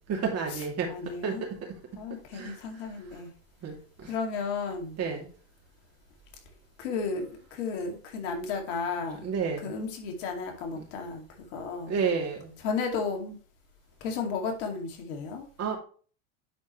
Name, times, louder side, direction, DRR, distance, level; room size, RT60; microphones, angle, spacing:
voice 1, 0.0-0.9 1.2-1.6 2.3-2.6 3.6-4.1 5.0-5.3 9.2-9.8 10.8-10.9 11.9-12.5 15.6-15.8, right 5 dB, 40° right, 1 dB, 2.8 m, -31 dB
voice 2, 0.9-1.5 1.9-3.3 4.1-5.0 6.8-9.3 9.6-11.9 12.6-13.4 14.0-15.5, left 4 dB, 75° left, 3 dB, 2.4 m, -33 dB
10.0 x 4.6 x 3.1 m, 0.40 s
supercardioid pair, 95°, 37 cm